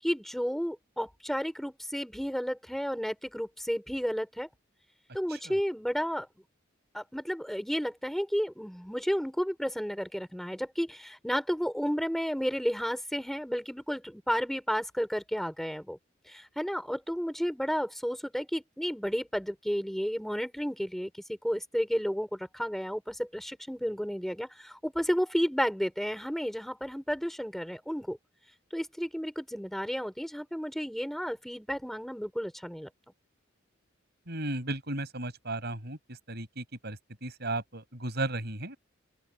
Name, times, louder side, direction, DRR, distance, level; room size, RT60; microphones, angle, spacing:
voice 1, 0.0-4.5 5.1-6.3 6.9-16.0 16.3-28.2 28.7-32.9, equal, ahead, 5.7 m, -32 dB
voice 2, 34.3-36.0 36.3-38.8, right 2 dB, 55° right, 7.3 m, -35 dB
open air
head